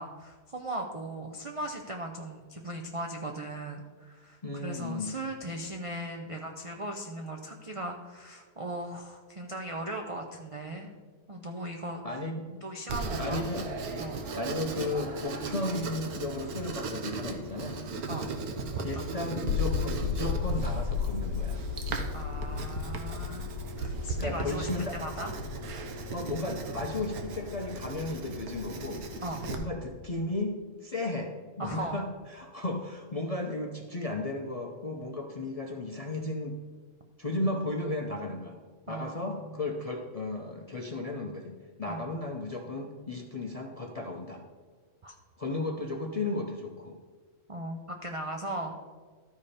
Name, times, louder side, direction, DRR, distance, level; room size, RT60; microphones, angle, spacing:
voice 1, 0.0-10.9 11.3-12.0 12.6-13.5 14.0-14.2 18.1-18.2 18.9-19.3 22.1-25.3 29.2-29.4 31.6-32.0 38.9-39.5 41.9-42.0 45.0-45.1 47.5-48.8, right 1 dB, 45° right, 2 dB, 0.4 m, -38 dB
voice 2, 4.4-5.1 12.0-12.5 13.2-13.7 14.4-17.8 18.8-21.6 24.2-25.0 26.1-36.6 37.2-38.6 38.9-41.5 41.8-44.4 45.4-47.0, left 2 dB, 40° left, 2 dB, 0.5 m, -34 dB
Writing, 12.9-29.6, right 3 dB, 90° right, 1.4 m, -37 dB
sound 1, 19.4-29.5, left 7 dB, 75° left, 1.0 m, -35 dB
13.0 x 5.1 x 4.2 m, 1.5 s
omnidirectional pair, 1.5 m